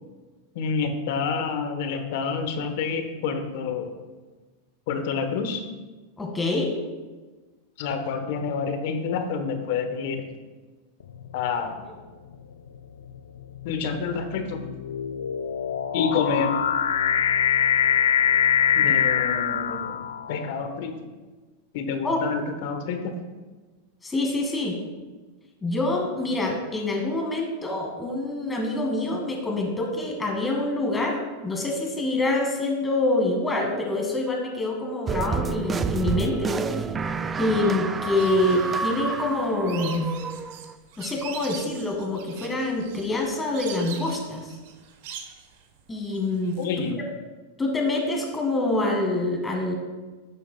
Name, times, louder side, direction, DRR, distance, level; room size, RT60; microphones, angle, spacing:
voice 1, 0.5-3.9 4.9-5.6 7.8-10.2 11.3-11.8 13.6-14.6 15.9-16.6 18.8-20.0 20.3-21.0 21.7-23.1 46.6-47.0, left 5 dB, 65° left, 7 dB, 1.0 m, -28 dB
voice 2, 6.2-6.7 18.8-18.9 22.0-22.2 24.0-24.8 25.6-31.2 31.4-36.5 37.4-40.1 41.0-44.5 45.9-46.6 47.6-49.7, left 2 dB, 15° left, 1 dB, 1.8 m, -26 dB
sound 1, 11.1-11.5 12.3-20.5, left 8 dB, 85° left, 0.4 m, -24 dB
sound 2, 35.1-40.7, right 5 dB, 20° right, 0.3 m, -29 dB
sound 3, 38.2-46.9, right 8 dB, 65° right, 1.0 m, -43 dB
11.5 x 6.9 x 2.3 m, 1.3 s
hypercardioid pair, 115°, 0 cm